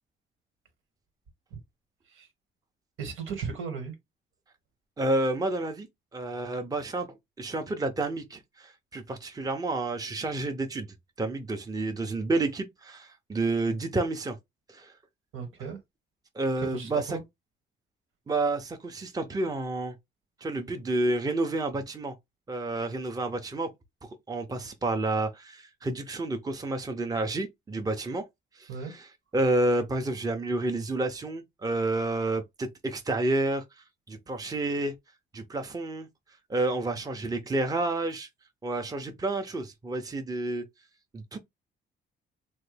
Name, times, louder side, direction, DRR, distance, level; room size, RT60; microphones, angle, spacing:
voice 1, 3.0-3.9 15.3-15.8 16.6-17.2 28.7-28.9, right 6 dB, 85° right, 1.4 m, -36 dB
voice 2, 5.0-5.9 6.1-7.1 7.4-10.9 11.2-14.4 14.7-14.9 16.3-17.0 18.3-19.9 20.4-22.2 22.5-23.7 24.3-28.2 28.6-29.1 29.3-33.6 34.1-34.9 35.3-36.1 36.5-38.3 38.6-40.6 41.1-41.4, right 2 dB, 20° right, 0.7 m, -30 dB
3.2 x 2.2 x 3.2 m
cardioid pair, 90°, 20 cm